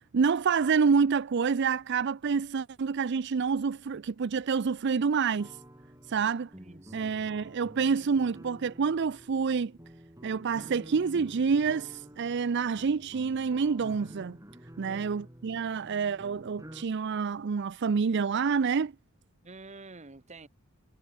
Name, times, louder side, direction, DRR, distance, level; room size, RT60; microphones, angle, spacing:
voice 1, 0.1-5.6 6.1-6.5 6.9-9.7 10.2-14.4 14.8-18.9, right 5 dB, 55° right, 0.5 m, -27 dB
sound 1, 5.3-16.9, equal, 15° right, 5.6 m, -50 dB
voice 2, 6.6-7.1 14.9-15.2 19.4-20.5, right 3 dB, 35° right, 1.3 m, -48 dB
head